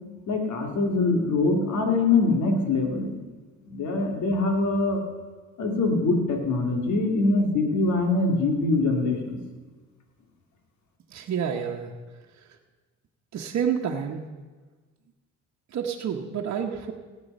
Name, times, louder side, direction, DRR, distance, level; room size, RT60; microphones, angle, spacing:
voice 1, 0.3-3.1 3.7-5.0 5.6-9.4, left 3 dB, 70° left, 3 dB, 2.3 m, -23 dB
voice 2, 11.1-11.9 12.4-12.6 13.3-14.2 15.7-16.9, right 7 dB, 60° right, 0 dB, 1.2 m, -29 dB
17.5 x 8.1 x 5.4 m, 1.3 s
cardioid pair, 90°, 30 cm